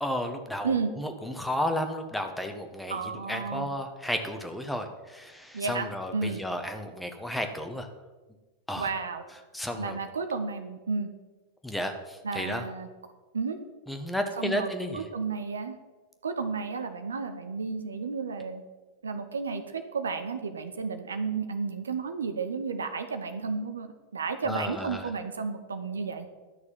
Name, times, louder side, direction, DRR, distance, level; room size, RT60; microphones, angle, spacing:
voice 1, 0.0-7.9 8.7-8.9 9.5-10.0 11.6-12.6 13.9-15.1 24.4-25.1, left 1 dB, 5° left, 6 dB, 1.3 m, -33 dB
voice 2, 2.9-3.7 5.5-6.4 8.8-9.2 9.8-11.1 12.2-12.9 13.3-13.6 14.4-15.8 16.2-18.6 19.0-26.3, right 4 dB, 70° right, 8 dB, 1.0 m, -32 dB
12.0 x 6.5 x 7.3 m, 1.2 s
figure-of-eight pair, 90°, 0 cm